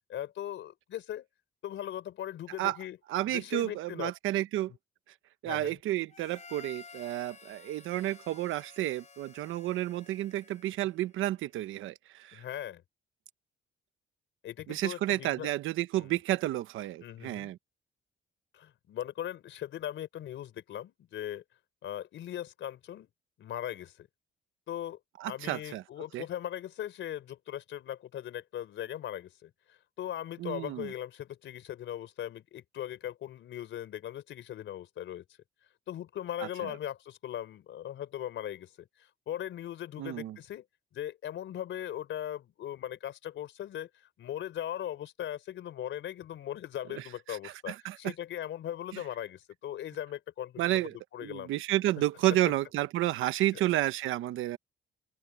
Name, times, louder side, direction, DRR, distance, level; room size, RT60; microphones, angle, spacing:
voice 1, 0.1-1.3 1.6-3.0 3.3-4.1 5.5-5.8 12.3-12.8 14.4-15.5 16.0-16.1 17.0-17.5 18.5-21.4 21.8-23.1 23.4-24.1 24.7-25.0 25.3-35.2 35.9-40.6 40.9-43.9 44.2-51.5 53.5-53.6, left 11 dB, 75° left, 3.9 m, -39 dB
voice 2, 3.1-4.7 5.4-12.4 14.7-17.6 25.2-25.8 26.1-26.2 30.4-30.9 36.6-36.7 40.0-40.4 46.9-48.1 48.9-49.0 50.6-54.6, right 14 dB, 90° right, 1.1 m, -31 dB
Harmonica, 6.1-11.1, left 5 dB, 35° left, 5.9 m, -53 dB
open air
cardioid pair, 90°, 20 cm